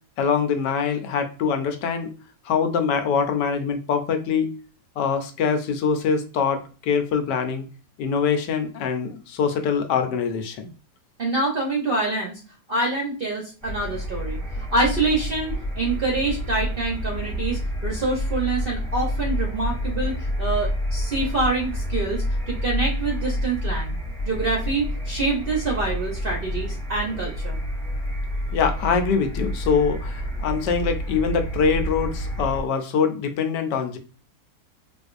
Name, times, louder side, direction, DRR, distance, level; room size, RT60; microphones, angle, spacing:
voice 1, 0.2-2.1 2.4-4.5 5.0-7.7 8.0-10.7 28.5-34.0, left 6 dB, 85° left, 6 dB, 1.3 m, -24 dB
voice 2, 11.2-12.4 12.7-14.4 14.7-20.1 20.4-24.0 24.2-27.6, right 2 dB, 55° right, -1 dB, 0.6 m, -26 dB
sound 1, 13.6-32.6, equal, 5° left, 0.3 m, -28 dB
4.0 x 2.5 x 2.4 m, 0.36 s
omnidirectional pair, 1.8 m